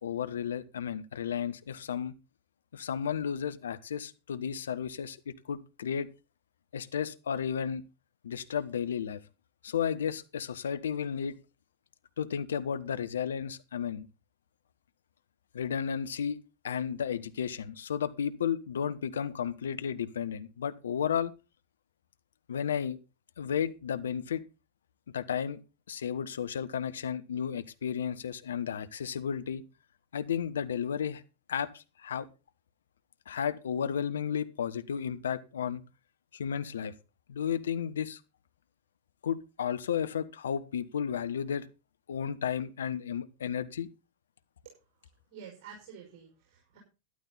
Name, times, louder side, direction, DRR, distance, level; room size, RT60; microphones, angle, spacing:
voice 1, 0.0-2.1 2.7-6.1 6.7-7.8 8.2-9.2 9.6-11.3 12.2-14.1 15.5-16.4 16.6-21.3 22.5-23.0 23.4-24.4 25.1-25.6 25.9-29.6 30.1-31.2 31.5-32.3 33.3-35.8 36.3-36.9 37.3-38.2 39.2-41.7 42.1-43.9, left 8 dB, 65° left, 1.0 m, -33 dB
voice 2, 45.3-46.8, right 7 dB, 40° right, 5.5 m, -49 dB
12.5 x 11.5 x 4.0 m
figure-of-eight pair, 90°, 0 cm